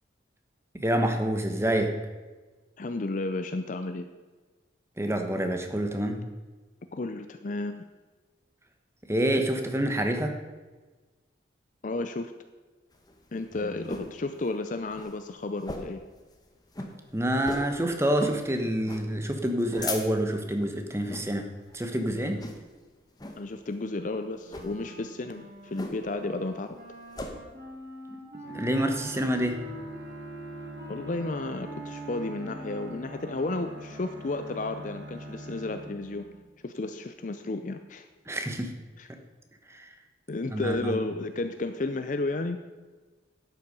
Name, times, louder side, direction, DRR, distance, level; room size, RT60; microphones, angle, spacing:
voice 1, 0.7-2.0 5.0-6.2 9.1-10.4 17.1-21.5 21.7-22.4 28.5-29.6 38.3-38.8 39.7-39.9 40.5-41.0, right 1 dB, 15° right, 5 dB, 1.0 m, -27 dB
voice 2, 2.8-4.1 6.9-7.8 11.8-12.3 13.3-16.0 23.4-26.8 30.9-36.3 36.6-38.0 39.0-39.1 40.3-42.6, left 2 dB, 45° left, 8 dB, 0.5 m, -32 dB
sound 1, 12.9-14.2 14.5-14.6 14.9-15.1 15.6-16.0 16.4-16.5 16.7-16.9 17.4-17.7 18.2-18.4 18.8-19.1 19.5-20.4 21.0-21.3 21.7-22.0 22.4-22.8 23.2-23.4 24.4-24.7 25.8-26.2 26.5-27.3, left 2 dB, 20° left, 1.1 m, -37 dB
Wind instrument woodwind instrument, 24.4-36.5, right 1 dB, 55° right, 2.9 m, -45 dB
Bowed string instrument, 28.4-36.6, right 1 dB, 80° right, 1.2 m, -44 dB
11.5 x 8.3 x 5.3 m, 1.3 s
head